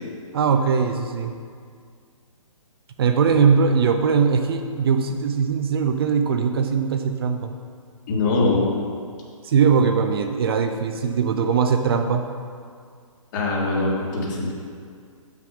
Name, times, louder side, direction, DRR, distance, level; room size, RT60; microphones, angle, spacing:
voice 1, 0.3-1.4 3.0-7.5 9.4-12.3, right 6 dB, 45° right, 6 dB, 0.6 m, -20 dB
voice 2, 8.1-8.7 13.3-14.5, left 2 dB, 35° left, -3 dB, 1.8 m, -22 dB
6.9 x 5.9 x 6.2 m, 2.1 s
figure-of-eight pair, 135°, 17 cm